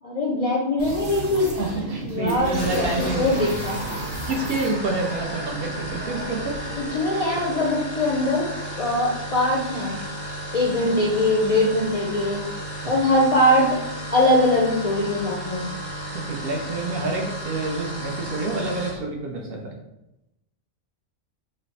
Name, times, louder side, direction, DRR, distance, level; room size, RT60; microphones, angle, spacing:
voice 1, 0.0-1.5 2.1-3.8 6.9-8.4 8.8-10.0 10.5-12.4 12.9-13.8 14.1-15.7, left 1 dB, 50° left, -4 dB, 0.4 m, -21 dB
sound 1, 0.8-7.0, right 1 dB, 85° right, 1.4 m, -35 dB
voice 2, 1.6-3.3 4.3-6.6 12.8-12.9 16.1-19.8, right 3 dB, 60° right, 1 dB, 0.7 m, -28 dB
sound 2, 2.5-19.0, right 1 dB, 25° right, 0.8 m, -33 dB
3.2 x 2.1 x 4.0 m, 0.89 s
omnidirectional pair, 1.2 m